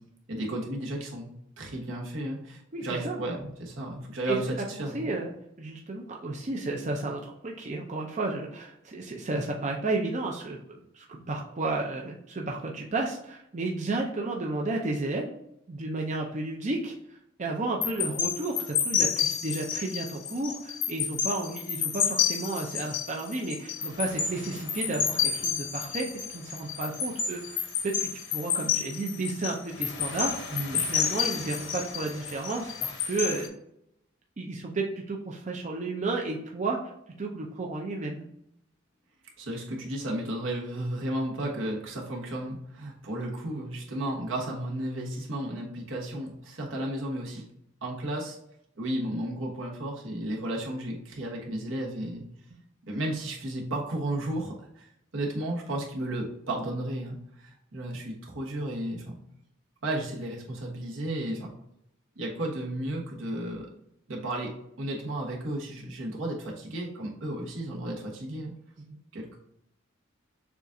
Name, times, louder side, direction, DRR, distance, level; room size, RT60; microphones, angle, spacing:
voice 1, 0.3-1.3 1.6-5.2 30.5-30.9 39.4-47.5 47.8-48.4 48.8-52.2 52.9-59.2 59.8-61.5 62.2-63.7 64.1-68.5 69.1-69.4, right 1 dB, 75° right, -1 dB, 1.2 m, -33 dB
voice 2, 2.7-3.2 4.3-4.4 4.7-5.3 5.6-15.3 15.7-30.4 30.7-33.5 34.4-36.9 37.2-38.2 68.9-69.0, right 2 dB, 35° right, 0 dB, 0.5 m, -32 dB
sound 1, 17.8-33.5, left 7 dB, 60° left, 0.8 m, -30 dB
6.9 x 2.4 x 2.6 m, 0.76 s
head